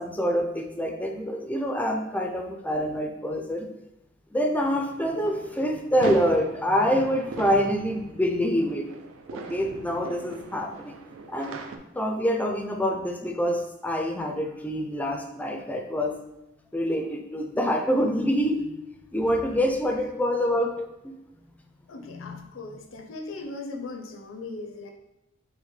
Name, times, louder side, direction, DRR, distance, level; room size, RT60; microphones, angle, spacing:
voice 1, 0.0-3.6 4.3-8.8 9.3-11.0 11.3-11.6 11.9-16.1 16.7-18.8 19.1-21.2 22.0-22.4, equal, 10° left, 3 dB, 0.4 m, -26 dB
sound 1, 4.6-11.8, right 4 dB, 80° right, 0.4 m, -40 dB
voice 2, 21.9-24.9, left 3 dB, 80° left, 4 dB, 0.6 m, -38 dB
6.2 x 2.1 x 3.1 m, 0.90 s
head